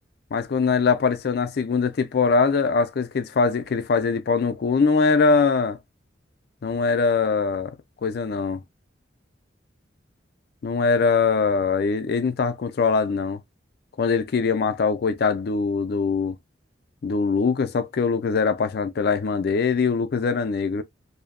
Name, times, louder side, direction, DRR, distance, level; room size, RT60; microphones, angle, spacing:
voice 1, 0.3-5.8 6.6-7.8 8.0-8.6 10.6-13.4 14.0-16.4 17.0-20.8, left 5 dB, 55° left, 0.4 m, -22 dB
2.7 x 2.1 x 2.4 m
head